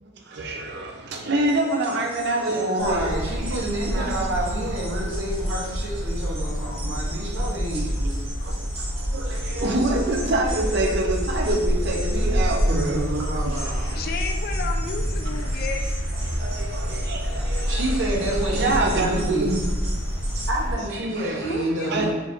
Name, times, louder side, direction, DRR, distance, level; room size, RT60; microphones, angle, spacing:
voice 1, 0.0-4.3 4.7-4.8 6.6-8.7 9.1-14.1 15.3-15.4 16.2-19.7 20.9-21.6 21.8-22.1, right 2 dB, 55° right, 0.5 m, -27 dB
sound 1, 1.4-20.5, right 2 dB, 30° right, 0.8 m, -41 dB
voice 2, 2.4-7.9 12.7-14.0 17.7-19.5 20.5-22.1, right 1 dB, 70° right, 1.0 m, -28 dB
sound 2, 2.8-20.8, equal, 75° left, 0.9 m, -27 dB
voice 3, 14.0-15.8 21.5-22.1, left 5 dB, 45° left, 0.3 m, -32 dB
3.9 x 2.5 x 3.5 m
head